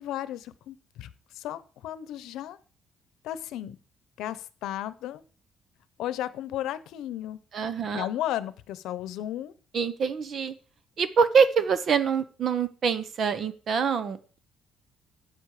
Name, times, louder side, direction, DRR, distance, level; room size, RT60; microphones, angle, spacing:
voice 1, 0.0-2.6 3.2-3.8 4.2-5.2 6.0-7.4 7.9-9.5, left 12 dB, 80° left, 15 dB, 0.9 m, -34 dB
voice 2, 7.5-8.1 9.7-10.5 11.0-14.4, right 6 dB, 40° right, 13 dB, 1.0 m, -25 dB
13.5 x 8.3 x 5.0 m, 0.40 s
cardioid pair, 165°, 0 cm